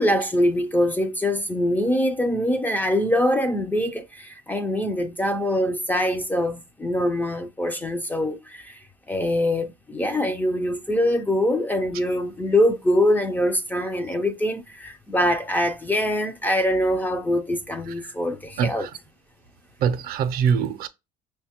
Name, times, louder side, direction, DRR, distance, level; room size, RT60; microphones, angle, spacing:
voice 1, 0.0-8.8 9.1-18.9, left 1 dB, 10° left, 0.3 m, -23 dB
voice 2, 18.6-18.9 19.8-20.9, right 7 dB, 60° right, 0.5 m, -23 dB
5.4 x 2.2 x 2.8 m
cardioid pair, 130°, 17 cm